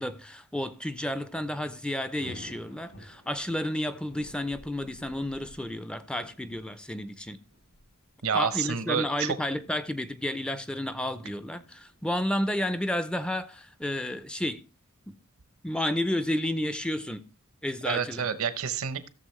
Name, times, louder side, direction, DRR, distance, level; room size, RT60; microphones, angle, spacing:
voice 1, 0.0-7.4 8.3-14.6 15.1-15.2 15.6-17.2 17.6-18.3, left 1 dB, 5° left, 0.5 m, -31 dB
Thunder / Rain, 1.2-13.7, equal, 70° left, 3.2 m, -53 dB
voice 2, 8.2-9.4 17.8-19.1, right 7 dB, 70° right, 0.8 m, -29 dB
16.0 x 6.9 x 3.1 m
head